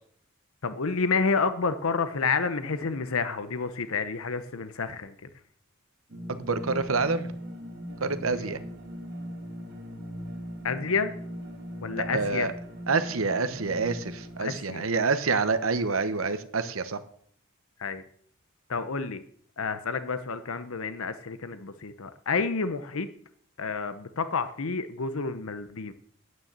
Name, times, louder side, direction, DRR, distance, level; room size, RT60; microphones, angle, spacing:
voice 1, 0.6-5.3 8.3-8.6 10.6-11.1 11.8-12.5 14.4-14.9 17.8-18.0 18.7-19.2 19.6-23.1 23.6-25.9, left 4 dB, 90° left, 12 dB, 0.8 m, -29 dB
sound 1, 6.1-14.5, equal, 55° right, 1.9 m, -39 dB
voice 2, 6.3-7.3 8.0-8.6 12.0-12.5 12.9-17.0, right 4 dB, 80° right, 11 dB, 0.9 m, -27 dB
9.5 x 9.4 x 7.3 m, 0.62 s
head